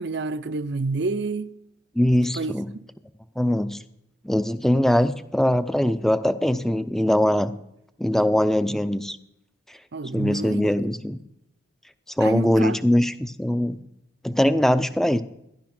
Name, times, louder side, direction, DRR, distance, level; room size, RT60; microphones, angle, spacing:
voice 1, 0.0-1.5 2.3-2.6 9.9-10.7 12.2-12.8, right 3 dB, 60° right, 0.6 m, -28 dB
voice 2, 2.0-2.7 3.4-3.8 4.2-7.5 8.0-9.2 10.1-11.2 12.2-13.8 14.2-15.2, left 1 dB, ahead, 0.5 m, -21 dB
14.5 x 11.0 x 6.0 m
head